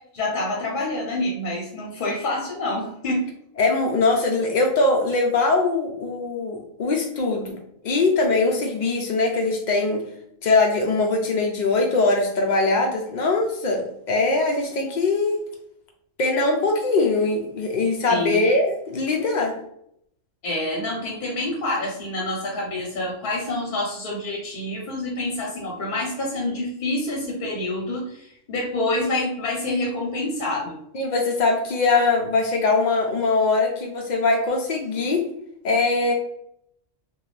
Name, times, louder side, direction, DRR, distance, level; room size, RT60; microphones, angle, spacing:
voice 1, 0.1-3.2 18.1-18.4 20.4-30.8, left 2 dB, 50° left, -2 dB, 0.7 m, -27 dB
voice 2, 3.6-7.6 7.8-10.0 10.4-15.4 16.2-19.5 30.9-35.2 35.6-36.1, left 3 dB, 80° left, 1 dB, 0.4 m, -21 dB
2.6 x 2.2 x 3.1 m, 0.74 s
omnidirectional pair, 1.3 m